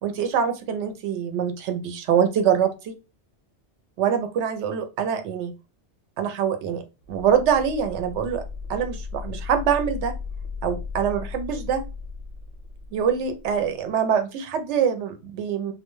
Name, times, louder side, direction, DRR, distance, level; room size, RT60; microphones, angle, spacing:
voice 1, 0.0-2.9 4.0-5.5 6.2-6.8 7.1-8.4 8.7-10.1 10.6-11.8 12.9-15.7, right 8 dB, 75° right, 7 dB, 0.8 m, -24 dB
sound 1, 7.0-13.7, left 4 dB, 65° left, 0.7 m, -36 dB
2.2 x 2.1 x 3.0 m, 0.28 s
omnidirectional pair, 1.2 m